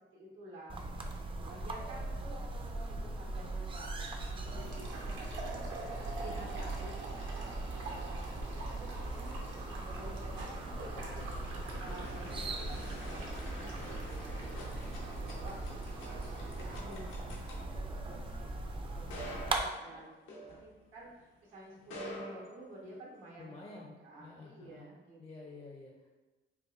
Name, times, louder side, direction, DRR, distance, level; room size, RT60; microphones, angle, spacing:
voice 1, 0.1-1.1 1.3-3.9 4.3-5.6 6.1-9.4 9.7-11.2 11.6-18.5 18.9-20.1 20.3-25.6, right 1 dB, 90° right, -5 dB, 1.4 m, -51 dB
sound 1, 0.7-19.6, right 2 dB, 25° right, 0.4 m, -40 dB
sound 2, 4.4-16.8, right 2 dB, 70° right, 0.8 m, -46 dB
voice 2, 10.8-11.4 11.7-12.4 23.4-24.9 25.2-26.1, left 3 dB, 30° left, 0 dB, 0.5 m, -51 dB
sound 3, 10.9-21.2 21.7-23.3, left 1 dB, 85° left, 0.8 m, -49 dB
4.6 x 2.3 x 2.5 m, 1.2 s
cardioid pair, 90°, 20 cm